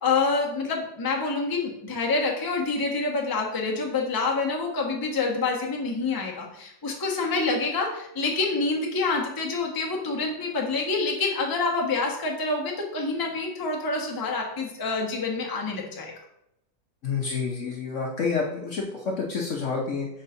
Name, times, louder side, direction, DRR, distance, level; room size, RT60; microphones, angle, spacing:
voice 1, 0.0-16.1, left 3 dB, 20° left, 0 dB, 0.7 m, -27 dB
voice 2, 17.0-20.1, left 5 dB, 55° left, 0 dB, 0.9 m, -28 dB
4.5 x 4.0 x 5.7 m, 0.80 s
omnidirectional pair, 1.9 m